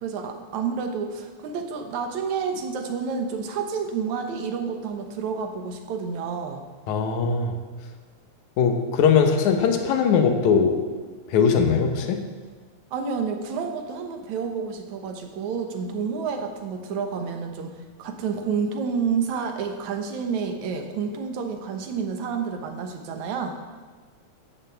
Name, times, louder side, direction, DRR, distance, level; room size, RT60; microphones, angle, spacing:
voice 1, 0.0-6.6 12.9-17.7 18.0-23.6, right 6 dB, 75° right, 5 dB, 2.5 m, -29 dB
voice 2, 6.9-7.5 8.6-10.8 11.3-12.2, left 6 dB, 80° left, 4 dB, 2.5 m, -20 dB
15.0 x 7.0 x 6.9 m, 1.4 s
omnidirectional pair, 3.4 m